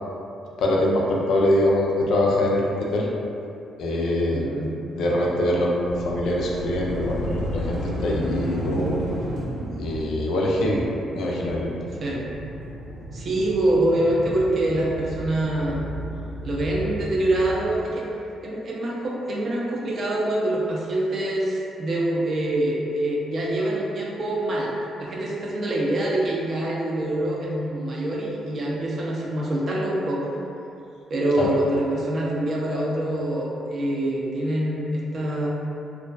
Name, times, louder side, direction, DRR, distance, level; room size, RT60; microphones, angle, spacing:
voice 1, 0.6-3.1 3.8-4.5 4.9-9.0 9.8-10.8 11.2-11.7 31.4-31.5, left 1 dB, 75° left, -3 dB, 0.4 m, -23 dB
voice 2, 4.3-4.8 12.0-12.2 13.1-15.8 16.4-18.1 18.4-24.7 25.0-30.3 31.1-35.5, right 1 dB, 50° right, -4 dB, 0.5 m, -25 dB
sound 1, 5.9-17.6, right 1 dB, 80° right, 0.9 m, -32 dB
2.3 x 2.3 x 2.3 m, 2.7 s
cardioid pair, 90°, 0 cm